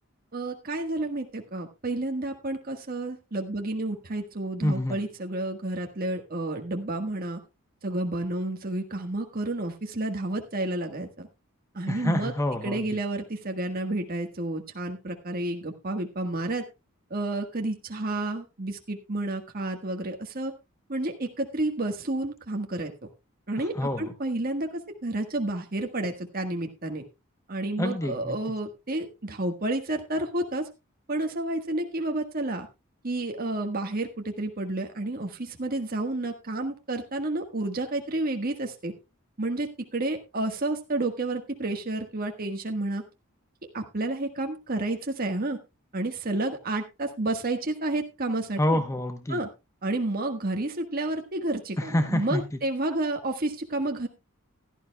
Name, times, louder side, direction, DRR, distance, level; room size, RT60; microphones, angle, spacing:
voice 1, 0.3-7.4 7.8-11.3 11.7-12.3 12.6-16.6 17.1-20.5 20.9-22.9 23.5-27.0 27.5-30.7 31.1-32.7 33.0-38.9 39.4-43.0 43.7-45.6 45.9-48.8 49.3-49.5 49.8-54.1, right 2 dB, 45° right, 4 dB, 1.5 m, -30 dB
voice 2, 4.6-5.0 11.9-12.9 23.6-24.1 27.8-28.4 48.6-49.4 51.8-52.6, left 1 dB, 15° left, 7 dB, 0.9 m, -27 dB
16.0 x 12.5 x 2.2 m, 0.25 s
head